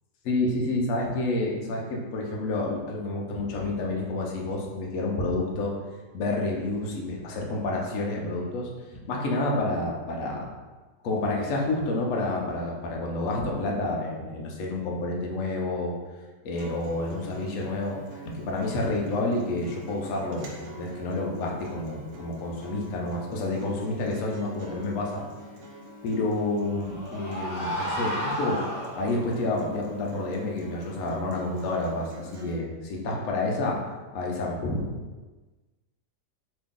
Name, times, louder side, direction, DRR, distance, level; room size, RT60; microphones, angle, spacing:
voice 1, 0.2-5.7 6.1-8.7 9.1-10.5 11.0-15.9 16.4-18.0 18.4-25.2 26.0-28.6 29.0-33.8 34.1-34.8, left 2 dB, 65° left, -1 dB, 0.9 m, -29 dB
Acoustic guitar, 16.5-32.6, right 1 dB, 70° right, 0.8 m, -46 dB
sound 1, 26.4-29.4, equal, 40° left, 0.9 m, -32 dB
3.0 x 2.6 x 3.6 m, 1.2 s
omnidirectional pair, 1.8 m